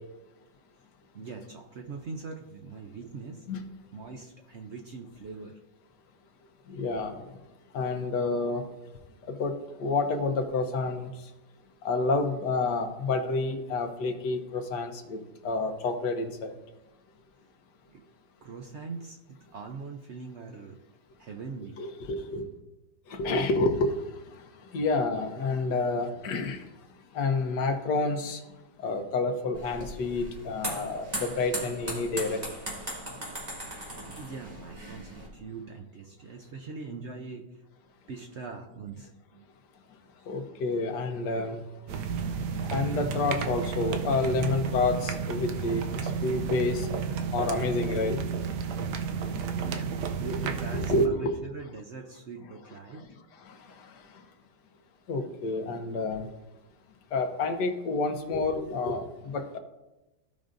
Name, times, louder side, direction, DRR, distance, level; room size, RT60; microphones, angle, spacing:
voice 1, 1.1-3.5 3.9-5.6 17.9-18.0 18.4-20.8 21.2-21.8 34.2-37.6 38.1-39.5 49.6-53.1, right 4 dB, 65° right, 3 dB, 0.7 m, -42 dB
voice 2, 6.7-7.1 7.7-8.6 9.4-9.5 9.8-11.1 11.8-15.2 15.4-16.5 21.8-22.5 23.1-23.9 24.7-26.6 27.1-28.4 28.8-32.4 40.3-41.6 42.7-46.9 47.3-48.2 50.2-51.3 55.1-56.3 57.1-59.6, left 3 dB, 75° left, 5 dB, 1.5 m, -29 dB
sound 1, 29.5-35.3, right 1 dB, 25° right, 1.6 m, -38 dB
sound 2, 41.9-51.1, right 6 dB, 80° right, 1.3 m, -32 dB
15.5 x 5.3 x 2.5 m, 1.0 s
omnidirectional pair, 1.8 m